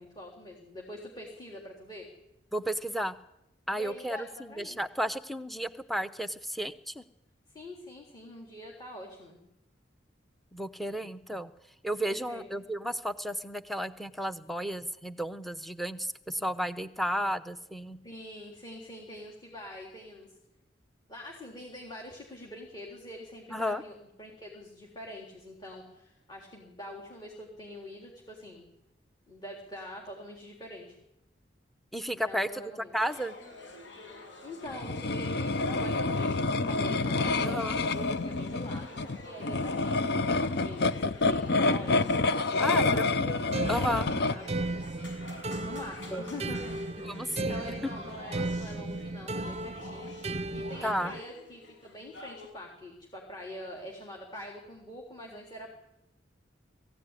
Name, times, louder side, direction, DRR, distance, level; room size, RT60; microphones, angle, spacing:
voice 1, 0.0-2.1 3.7-4.8 7.5-9.4 12.0-12.5 18.0-20.3 21.1-28.7 29.3-31.0 32.3-33.0 34.4-42.0 42.3-43.1 43.7-44.6 45.5-50.1 50.5-55.7, left 1 dB, 25° left, -1 dB, 3.6 m, -44 dB
voice 2, 2.5-3.1 3.7-7.0 10.5-11.5 11.8-18.0 23.5-23.8 31.9-32.6 32.9-33.4 37.4-37.8 42.6-43.4 43.7-44.1 46.1-46.2 47.1-47.6 50.8-51.1, equal, ahead, 11 dB, 0.8 m, -33 dB
sound 1, 33.0-52.5, left 2 dB, 80° left, 6.8 m, -47 dB
sound 2, 34.6-44.4, left 3 dB, 60° left, 0.7 m, -28 dB
sound 3, 43.5-51.2, right 2 dB, 35° right, 0.7 m, -35 dB
22.0 x 16.0 x 9.9 m, 0.91 s
head